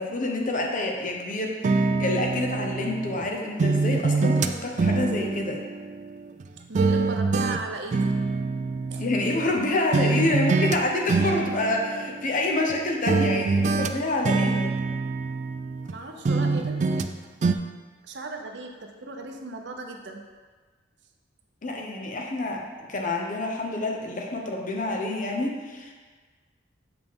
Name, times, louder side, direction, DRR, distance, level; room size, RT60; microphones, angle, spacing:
voice 1, 0.0-5.6 9.0-14.7 21.6-25.9, left 2 dB, 45° left, 1 dB, 0.9 m, -27 dB
sound 1, 1.6-3.2 3.6-6.4 6.7-9.6 9.9-10.8 11.1-12.7 13.1-15.9 16.2-17.1 17.4-17.5, right 3 dB, 40° right, 0.3 m, -25 dB
voice 2, 6.7-8.2 8.9-9.1 15.9-17.1 18.0-20.3, right 2 dB, 70° right, 3 dB, 0.7 m, -37 dB
7.4 x 5.0 x 3.7 m, 1.4 s
head